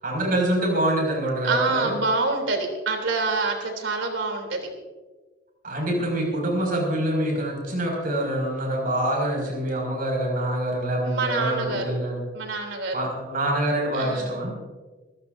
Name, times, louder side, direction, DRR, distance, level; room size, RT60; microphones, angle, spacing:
voice 1, 0.0-1.9 5.6-12.2 12.9-14.5, right 1 dB, 50° right, 0 dB, 6.0 m, -25 dB
voice 2, 1.4-4.7 11.0-11.9 12.3-13.0 13.9-14.4, right 3 dB, 80° right, 3 dB, 3.3 m, -26 dB
25.0 x 15.5 x 2.7 m, 1.3 s
head